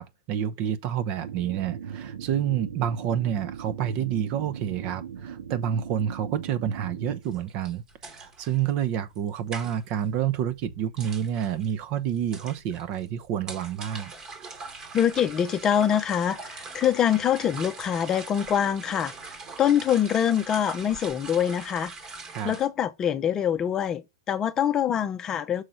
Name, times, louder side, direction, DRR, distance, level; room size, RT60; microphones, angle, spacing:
voice 1, 0.0-7.8 8.1-14.1 22.3-22.6, right 9 dB, 40° right, 0.8 m, -28 dB
sound 1, 1.2-7.2, right 8 dB, 85° right, 2.2 m, -39 dB
sound 2, 7.2-22.7, right 4 dB, 25° right, 1.3 m, -43 dB
voice 2, 14.9-19.1 19.6-21.9 22.4-25.6, left 9 dB, 20° left, 0.7 m, -24 dB
6.4 x 3.8 x 5.7 m
hypercardioid pair, 135°, 2 cm